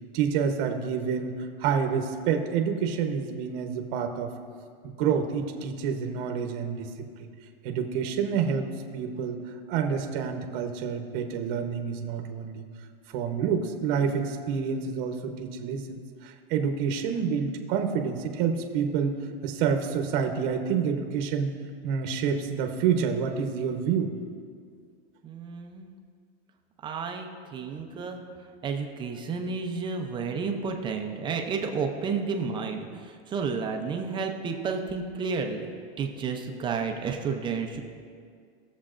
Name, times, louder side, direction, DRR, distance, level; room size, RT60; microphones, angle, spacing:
voice 1, 0.1-4.3 4.8-7.3 7.6-8.7 8.9-9.4 9.7-12.6 13.1-19.1 19.4-21.5 21.8-24.1, right 6 dB, 45° right, 5 dB, 0.9 m, -28 dB
voice 2, 25.2-25.9 26.8-28.2 28.6-35.7 36.0-37.8, right 5 dB, 15° right, 4 dB, 0.5 m, -31 dB
18.0 x 7.2 x 2.5 m, 2.1 s
supercardioid pair, 150°, 33 cm